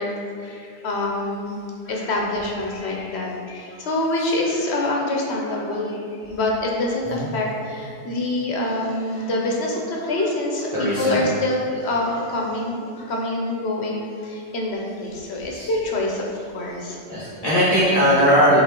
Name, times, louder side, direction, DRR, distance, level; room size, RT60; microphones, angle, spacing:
voice 1, 0.0-1.5 1.8-17.3, left 2 dB, 70° left, -1 dB, 1.0 m, -26 dB
voice 2, 10.7-11.3 15.5-15.7 17.1-18.6, equal, 35° left, -12 dB, 1.3 m, -19 dB
7.7 x 3.4 x 3.7 m, 2.4 s
omnidirectional pair, 1.2 m